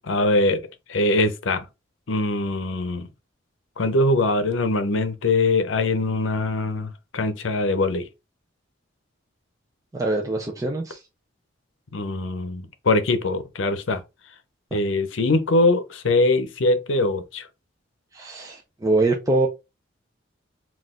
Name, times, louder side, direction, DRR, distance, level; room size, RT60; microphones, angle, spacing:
voice 1, 0.1-0.6 0.9-1.7 2.1-3.1 3.8-8.1 11.9-14.0 14.7-17.5, left 2 dB, 75° left, 0.7 m, -22 dB
voice 2, 9.9-11.0 18.1-19.5, right 2 dB, 15° right, 0.5 m, -23 dB
4.0 x 2.4 x 3.7 m
head